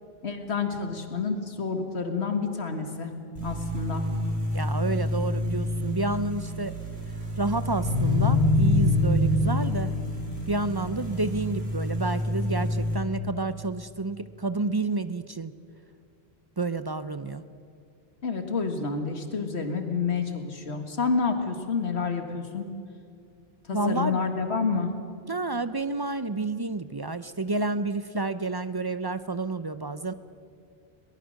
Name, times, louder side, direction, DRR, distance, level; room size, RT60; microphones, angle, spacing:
voice 1, 0.2-3.1 3.4-4.0 18.2-22.7 23.7-24.9, left 4 dB, 85° left, 6 dB, 2.1 m, -29 dB
sound 1, 3.3-12.9, left 1 dB, 80° right, 5.4 m, -26 dB
voice 2, 4.5-6.7 7.4-9.9 10.5-15.5 16.6-17.4 23.7-24.2 25.3-30.1, right 3 dB, 30° right, 12 dB, 0.5 m, -29 dB
22.5 x 19.0 x 6.5 m, 2.3 s
omnidirectional pair, 1.1 m